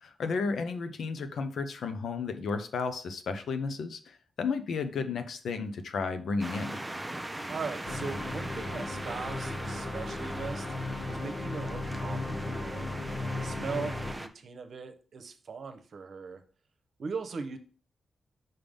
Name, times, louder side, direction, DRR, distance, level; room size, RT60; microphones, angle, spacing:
voice 1, 0.0-6.8, left 4 dB, 75° left, 8 dB, 0.8 m, -33 dB
sound 1, 6.4-14.3, right 1 dB, 10° right, 0.6 m, -40 dB
voice 2, 7.5-10.7 11.1-13.0 13.4-16.4 17.0-17.6, right 5 dB, 65° right, 9 dB, 0.9 m, -39 dB
sound 2, 7.8-14.1, left 2 dB, 45° left, 0.9 m, -36 dB
5.6 x 3.6 x 5.2 m, 0.41 s
cardioid pair, 90°, 0 cm